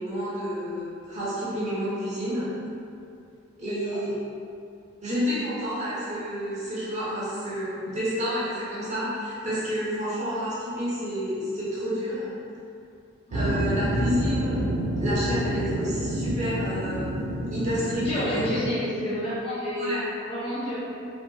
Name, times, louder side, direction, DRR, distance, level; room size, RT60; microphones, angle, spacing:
voice 1, 0.0-2.5 3.6-4.2 5.0-12.3 13.3-14.7 15.0-17.2 17.5-18.4 19.8-20.0, equal, 40° right, -10 dB, 0.8 m, -30 dB
sound 1, 13.3-18.7, right 1 dB, 85° right, 0.4 m, -28 dB
voice 2, 17.9-20.9, equal, 30° left, -10 dB, 0.9 m, -30 dB
2.9 x 2.7 x 2.2 m, 2.5 s
head